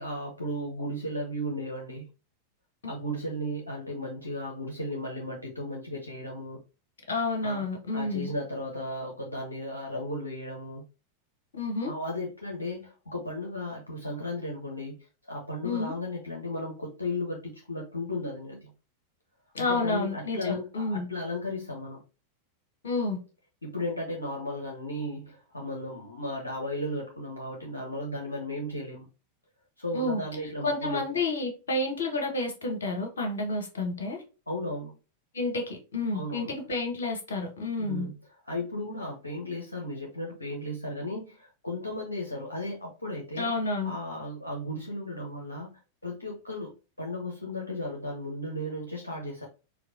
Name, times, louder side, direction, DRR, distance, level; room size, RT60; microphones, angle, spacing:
voice 1, 0.0-2.1 2.9-6.6 7.4-7.6 7.9-10.8 11.8-18.7 19.6-22.0 23.6-29.1 29.8-31.0 34.5-34.9 36.1-36.5 37.8-38.2 38.4-43.5 43.8-45.7 46.0-49.5, left 1 dB, 80° left, 0.7 m, -35 dB
voice 2, 7.1-8.3 11.5-11.9 15.6-15.9 19.5-21.0 22.8-23.2 29.9-30.2 30.6-34.2 35.3-38.1 43.4-43.9, left 2 dB, 65° left, 1.1 m, -30 dB
4.4 x 2.2 x 2.6 m
figure-of-eight pair, 90°, 0 cm